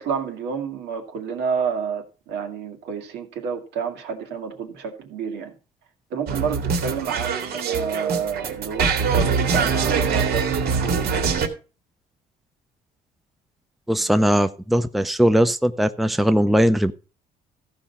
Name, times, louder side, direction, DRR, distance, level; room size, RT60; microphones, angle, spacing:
voice 1, 0.0-5.5 6.1-11.4, right 6 dB, 85° right, 2.2 m, -29 dB
sound 1, 6.3-11.5, right 5 dB, 70° right, 2.1 m, -23 dB
voice 2, 13.9-16.9, equal, ahead, 0.6 m, -19 dB
14.0 x 5.2 x 5.8 m
cardioid pair, 110°, 17 cm